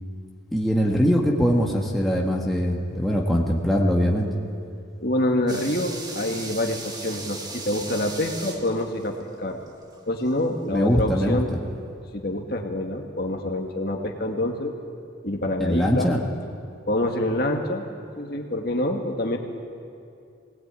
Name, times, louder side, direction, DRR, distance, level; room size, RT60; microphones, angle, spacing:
voice 1, 0.5-4.3 10.7-11.6 15.6-16.2, equal, ahead, -3 dB, 1.7 m, -22 dB
voice 2, 5.0-9.6 10.1-11.5 12.1-14.8 15.2-16.1 16.9-17.9 18.2-19.4, left 1 dB, 50° left, 2 dB, 2.0 m, -26 dB
sound 1, 5.5-10.5 10.8-10.9, right 2 dB, 20° right, 1.7 m, -38 dB
21.5 x 19.0 x 9.1 m, 2.5 s
head